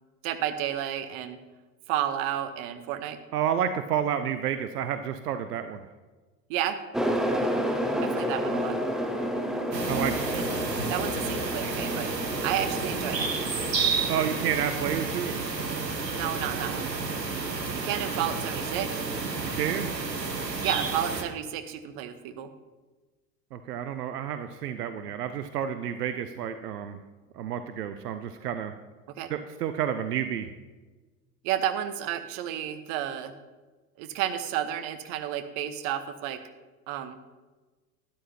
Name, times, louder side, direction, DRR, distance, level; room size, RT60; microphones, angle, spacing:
voice 1, 0.2-1.4 1.9-3.2 6.5-6.8 8.2-8.8 10.3-10.5 10.9-12.1 12.4-13.5 16.1-16.9 17.7-19.0 20.6-22.5 29.2-29.3 31.4-33.3 34.0-36.4 36.9-37.2, right 11 dB, 45° right, 10 dB, 0.9 m, -31 dB
voice 2, 3.3-5.8 9.9-10.1 14.1-15.3 19.5-19.9 23.5-27.0 27.3-28.7 29.3-30.5, right 9 dB, 70° right, 10 dB, 0.7 m, -30 dB
sound 1, 6.9-14.5, equal, ahead, 0.3 m, -30 dB
sound 2, 9.7-21.2, right 4 dB, 90° right, 1.1 m, -31 dB
12.0 x 10.5 x 2.8 m, 1.3 s
figure-of-eight pair, 80°, 48 cm